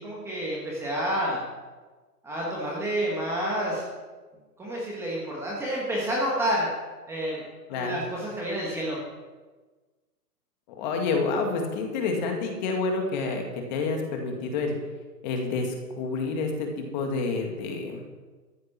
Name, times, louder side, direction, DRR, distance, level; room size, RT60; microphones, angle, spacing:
voice 1, 0.0-1.4 2.2-3.8 4.6-6.7 7.1-7.4 7.7-9.0, equal, 5° right, -5 dB, 1.3 m, -29 dB
voice 2, 10.8-14.7 15.2-18.0, left 4 dB, 25° left, 3 dB, 2.1 m, -28 dB
14.0 x 9.3 x 6.0 m, 1.3 s
hypercardioid pair, 160°, 49 cm